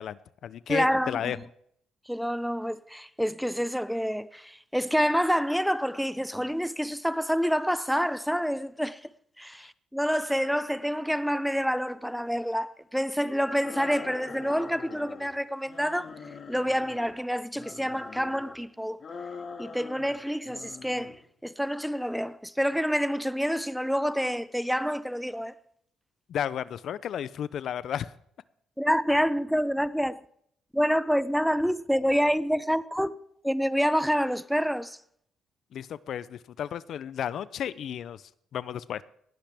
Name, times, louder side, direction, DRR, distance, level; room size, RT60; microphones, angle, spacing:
voice 1, 0.0-1.4 26.3-28.1 35.7-38.2 38.5-39.0, left 9 dB, 65° left, 0.4 m, -33 dB
voice 2, 0.7-1.4 2.1-9.1 9.4-16.1 16.5-19.0 19.6-21.2 21.4-25.5 28.8-30.2 30.7-33.1 33.4-35.0, equal, ahead, 0.4 m, -27 dB
sound 1, 13.6-15.3 15.7-17.1 17.5-18.6 19.0-20.2 20.4-21.2, left 5 dB, 45° left, 1.7 m, -43 dB
18.0 x 11.5 x 3.4 m
cardioid pair, 100°, 0 cm